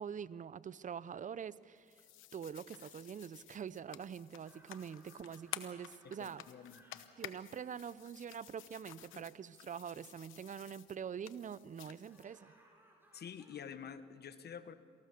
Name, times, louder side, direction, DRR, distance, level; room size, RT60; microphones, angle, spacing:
voice 1, 0.0-1.9 2.3-6.4 7.2-12.5, right 7 dB, 40° right, 18 dB, 0.6 m, -45 dB
sound 1, 1.8-12.2, left 13 dB, 90° left, 1.0 m, -52 dB
sound 2, 4.4-8.8 12.1-13.7, right 1 dB, 10° right, 5.1 m, -66 dB
voice 2, 6.2-7.0 9.1-9.3 13.1-14.7, left 7 dB, 55° left, 11 dB, 1.3 m, -49 dB
27.0 x 19.0 x 6.7 m, 2.3 s
cardioid pair, 90°, 20 cm